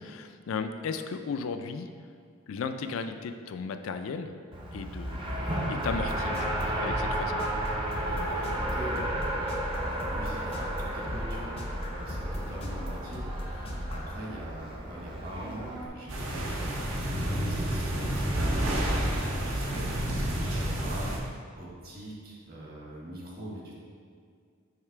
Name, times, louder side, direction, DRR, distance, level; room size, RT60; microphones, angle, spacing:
voice 1, 0.0-1.9 2.5-4.4 4.7-7.4, left 5 dB, 75° left, 8 dB, 0.3 m, -35 dB
Race car auto racing, 4.5-15.9, right 1 dB, 25° right, 0.6 m, -33 dB
sound 1, 5.8-14.2, equal, 30° left, 0.5 m, -37 dB
voice 2, 8.1-9.7 10.0-11.6 11.8-23.7, right 1 dB, 45° right, -3 dB, 1.2 m, -43 dB
sound 2, 16.1-21.2, right 1 dB, 75° right, 0.9 m, -29 dB
6.7 x 3.2 x 4.6 m, 2.2 s
head